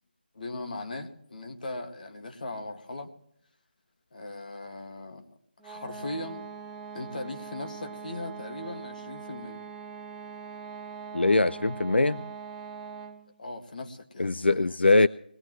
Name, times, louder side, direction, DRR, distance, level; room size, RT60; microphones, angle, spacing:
voice 1, 0.3-3.1 4.1-5.3 5.6-6.5 6.9-9.6 13.4-14.8, left 2 dB, 55° left, 6 dB, 1.9 m, -39 dB
sound 1, 5.6-13.3, right 6 dB, 5° right, 0.9 m, -42 dB
voice 2, 11.1-12.2 14.2-15.1, left 3 dB, 90° left, 15 dB, 0.5 m, -22 dB
21.5 x 17.5 x 3.1 m, 0.71 s
figure-of-eight pair, 165°, 6 cm